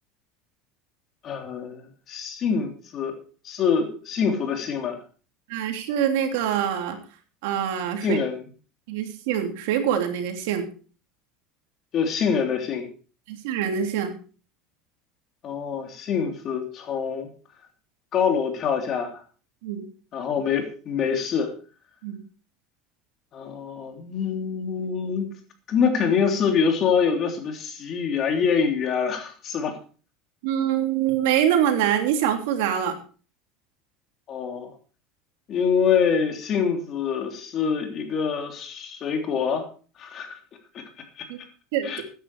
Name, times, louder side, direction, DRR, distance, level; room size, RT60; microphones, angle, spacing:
voice 1, 1.2-3.1 3.4-5.0 8.0-8.4 11.9-12.9 15.4-17.3 18.1-19.2 20.1-21.5 23.3-25.3 25.7-29.8 34.3-34.7 35.5-39.7 40.0-40.4 40.7-40.8 41.2-41.3 41.8-42.0, left 6 dB, 35° left, 5 dB, 3.1 m, -25 dB
voice 2, 5.5-7.0 7.4-8.2 8.9-10.7 13.3-14.1 19.6-19.8 22.0-22.2 30.4-33.0 41.3-41.4 41.7-41.9, right 9 dB, 80° right, 6 dB, 3.0 m, -24 dB
14.5 x 10.0 x 4.8 m, 0.37 s
cardioid pair, 150°, 0 cm